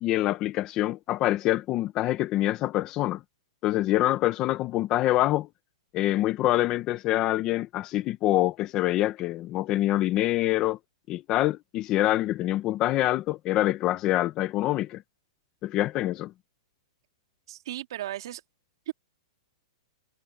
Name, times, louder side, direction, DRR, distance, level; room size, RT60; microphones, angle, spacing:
voice 1, 0.0-3.2 3.6-5.5 5.9-10.8 11.1-15.0 15.6-16.3, left 15 dB, 20° left, 0.5 m, -25 dB
voice 2, 17.5-18.4 18.9-19.0, right 13 dB, 50° right, 2.9 m, -35 dB
hypercardioid pair, 180°, 3 cm